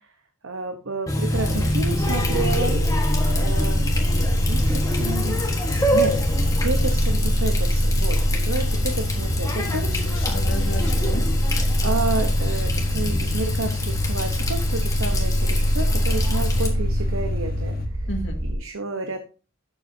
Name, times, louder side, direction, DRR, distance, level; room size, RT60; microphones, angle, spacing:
voice 1, 0.4-2.8 3.3-3.9 4.4-6.2 6.6-10.3 11.8-17.8 18.4-19.2, right 3 dB, 70° right, 5 dB, 1.0 m, -30 dB
Water tap faucet, 1.1-16.7, left 1 dB, 15° left, 1.4 m, -27 dB
sound 1, 1.3-17.9, left 4 dB, 40° left, 1.3 m, -30 dB
sound 2, 1.3-18.5, equal, 45° right, 2.3 m, -24 dB
voice 2, 9.7-11.2 18.1-18.4, equal, 60° left, 3 dB, 2.0 m, -34 dB
11.5 x 7.1 x 2.8 m, 0.34 s
head